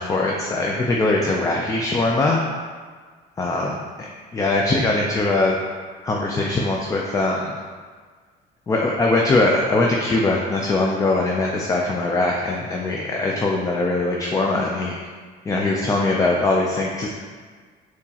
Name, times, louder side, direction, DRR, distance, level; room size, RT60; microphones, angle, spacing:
voice 1, 0.0-2.4 3.4-3.8 4.3-5.6 6.0-7.5 8.7-14.9 15.5-17.1, left 2 dB, 20° left, -1 dB, 0.4 m, -21 dB
4.3 x 3.0 x 2.8 m, 1.5 s
cardioid pair, 110°, 17 cm